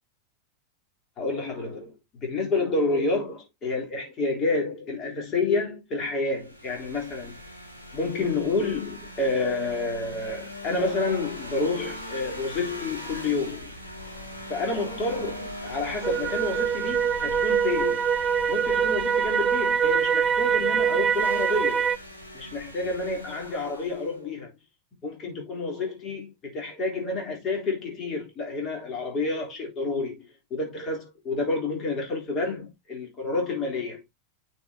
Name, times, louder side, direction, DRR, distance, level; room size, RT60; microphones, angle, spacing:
voice 1, 1.2-7.4 7.9-13.7 14.5-18.1 18.5-21.9 22.3-24.5 25.0-30.2 30.5-34.0, left 3 dB, 30° left, 3.4 m, -29 dB
sound 1, 6.3-24.2, left 1 dB, 85° left, 2.1 m, -41 dB
sound 2, 16.0-22.0, right 7 dB, 20° right, 0.4 m, -24 dB
9.2 x 4.8 x 2.7 m
figure-of-eight pair, 90°, 0 cm